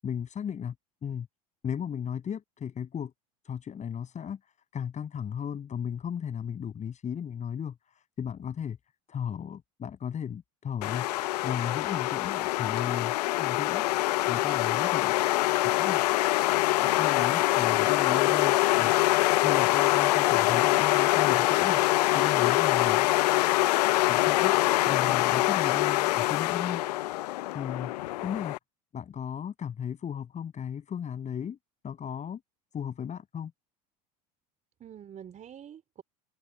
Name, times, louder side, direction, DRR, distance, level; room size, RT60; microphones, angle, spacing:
voice 1, 0.0-0.7 1.0-1.3 1.6-3.1 3.4-8.8 9.1-15.2 15.7-16.0 16.8-18.9 19.4-23.1 24.1-24.5 24.9-26.8 27.5-27.9 28.2-28.6 28.9-31.6 31.8-32.4 32.7-33.5, left 8 dB, 35° left, 7.4 m, -35 dB
sound 1, 10.8-28.6, left 18 dB, 80° left, 0.6 m, -24 dB
voice 2, 22.3-23.0 24.6-25.0 34.8-36.0, right 9 dB, 40° right, 4.0 m, -47 dB
hypercardioid pair, 85°, 20 cm